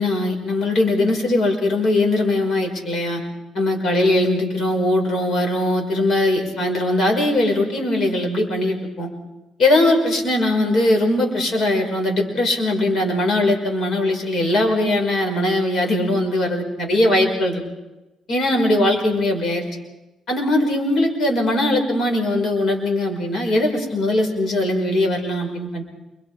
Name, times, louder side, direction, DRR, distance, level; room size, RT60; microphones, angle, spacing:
voice 1, 0.0-3.2 3.6-9.1 9.6-17.6 18.3-19.6 20.3-25.8, left 1 dB, 50° left, 2 dB, 5.3 m, -20 dB
29.0 x 22.5 x 4.9 m, 1.0 s
cardioid pair, 120°, 0 cm